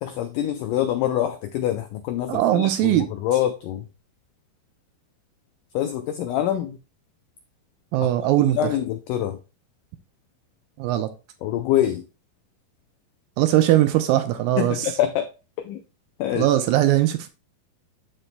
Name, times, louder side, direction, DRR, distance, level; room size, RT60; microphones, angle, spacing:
voice 1, 0.0-3.9 5.7-6.8 8.0-8.1 8.5-9.4 11.4-12.1 14.6-15.3 15.6-15.8 16.2-16.5, left 11 dB, 85° left, 8 dB, 1.8 m, -25 dB
voice 2, 2.3-3.1 7.9-8.6 10.8-11.1 13.4-14.9 16.4-17.3, right 13 dB, 80° right, 9 dB, 2.2 m, -20 dB
13.0 x 4.4 x 2.2 m, 0.30 s
omnidirectional pair, 4.4 m